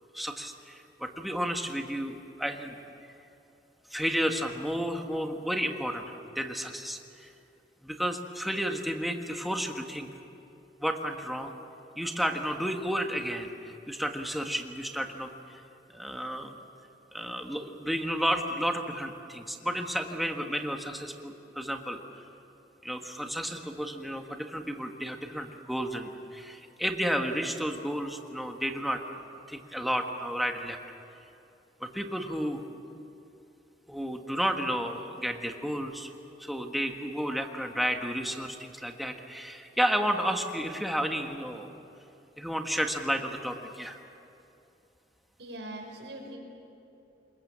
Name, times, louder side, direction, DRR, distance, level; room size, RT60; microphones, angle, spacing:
voice 1, 0.1-2.8 3.9-7.3 7.8-10.1 10.8-11.5 12.0-15.3 15.9-16.6 17.1-22.2 22.8-29.0 29.5-30.8 31.8-32.8 33.9-36.1 36.4-41.7 42.4-44.0, equal, ahead, 3 dB, 1.5 m, -32 dB
voice 2, 45.4-46.4, right 1 dB, 90° right, 2 dB, 5.3 m, -41 dB
27.0 x 22.0 x 7.5 m, 2.8 s
head